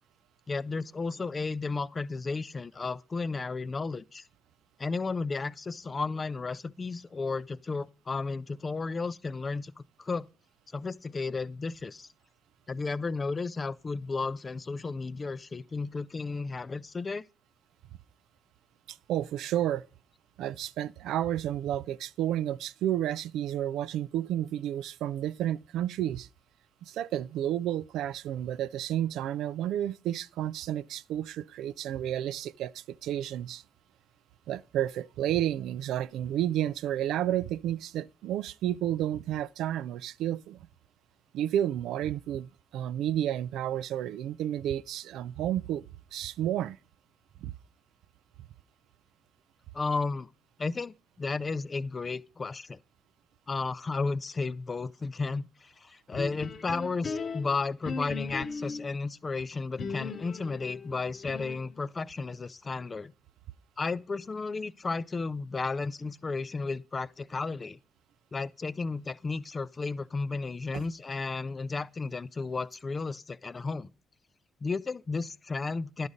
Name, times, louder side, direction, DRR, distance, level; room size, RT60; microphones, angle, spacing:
voice 1, 0.5-4.3 4.8-10.3 10.7-12.1 12.7-17.2 49.7-50.3 50.6-52.8 53.5-63.1 63.8-67.8 68.3-73.9 74.6-76.1, left 4 dB, 30° left, 0.3 m, -33 dB
voice 2, 18.9-19.9 20.4-26.3 26.8-33.6 34.5-40.7 41.3-45.8 46.1-46.8 47.4-47.5 70.7-70.8, right 11 dB, 85° right, 0.3 m, -31 dB
sound 1, 56.1-58.9 59.8-61.8, left 5 dB, 50° left, 0.8 m, -38 dB
11.0 x 4.0 x 4.9 m
cardioid pair, 90°, 0 cm